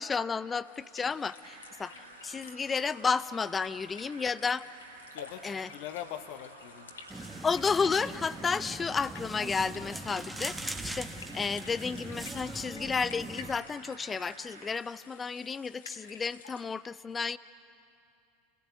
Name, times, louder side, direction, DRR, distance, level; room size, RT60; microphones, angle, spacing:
voice 1, 0.0-2.0 2.2-4.6 5.4-5.7 7.4-17.4, left 5 dB, 20° left, 17 dB, 0.6 m, -32 dB
sound 1, 0.6-16.6, left 5 dB, 70° left, 2.0 m, -52 dB
sound 2, 1.4-14.8, right 4 dB, 80° right, 2.0 m, -52 dB
voice 2, 5.1-7.0, left 12 dB, 50° left, 11 dB, 1.1 m, -42 dB
sound 3, 7.1-13.6, right 2 dB, 5° right, 1.3 m, -41 dB
28.0 x 16.0 x 8.3 m, 2.7 s
figure-of-eight pair, 80°, 0 cm